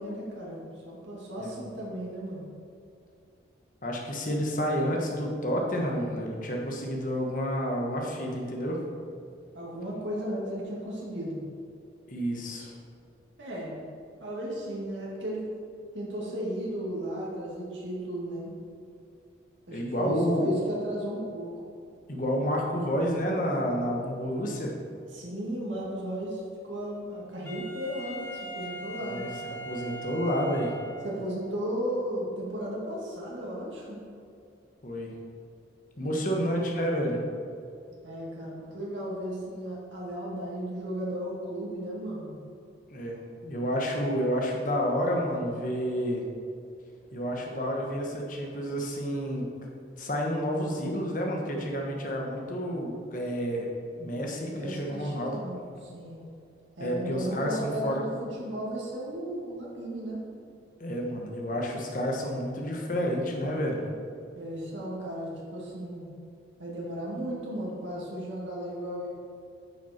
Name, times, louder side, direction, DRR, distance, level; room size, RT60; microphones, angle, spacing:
voice 1, 0.0-2.4 9.5-11.4 13.4-13.8 14.2-15.4 15.9-18.5 19.7-21.5 25.1-29.2 31.0-34.0 38.0-42.3 54.4-56.2 56.8-60.2 64.3-66.1 66.6-69.1, equal, 85° right, -5 dB, 2.2 m, -35 dB
voice 2, 3.8-8.8 12.1-12.7 19.7-20.5 22.1-24.7 29.0-30.7 34.8-35.1 36.0-37.2 42.9-46.2 47.1-49.5 50.0-53.7 54.0-55.4 56.8-58.0 60.8-63.8, equal, 45° left, 0 dB, 1.4 m, -30 dB
Wind instrument woodwind instrument, 27.4-31.4, right 2 dB, 15° left, 1.2 m, -40 dB
9.7 x 6.0 x 4.4 m, 2.5 s
head